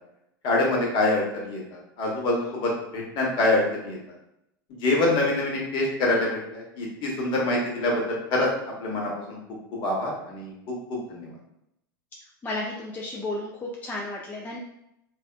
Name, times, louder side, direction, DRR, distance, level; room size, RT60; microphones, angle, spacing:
voice 1, 0.4-4.0 4.8-8.5 8.8-9.4 9.7-10.5 10.9-11.3, left 2 dB, 45° left, -2 dB, 1.0 m, -25 dB
voice 2, 12.4-14.6, left 2 dB, 15° left, -2 dB, 0.4 m, -33 dB
3.3 x 2.3 x 2.2 m, 0.80 s
figure-of-eight pair, 90°, 12 cm